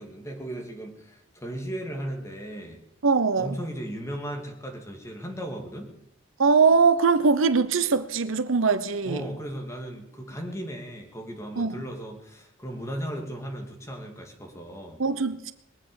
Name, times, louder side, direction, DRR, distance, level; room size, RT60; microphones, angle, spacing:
voice 1, 0.0-2.8 3.4-5.9 9.0-15.0, right 1 dB, 15° left, 2.7 m, -36 dB
voice 2, 3.0-3.5 6.4-9.2 11.6-11.8 15.0-15.5, right 4 dB, 75° right, 0.8 m, -21 dB
21.0 x 8.6 x 7.1 m
head